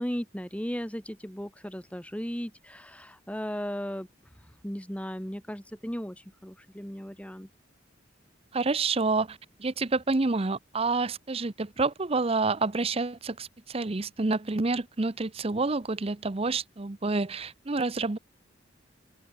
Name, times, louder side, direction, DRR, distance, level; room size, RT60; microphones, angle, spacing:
voice 1, 0.0-4.1 4.6-7.5, equal, 5° left, 2.6 m, -36 dB
voice 2, 8.5-18.2, right 3 dB, 30° right, 0.7 m, -28 dB
open air
head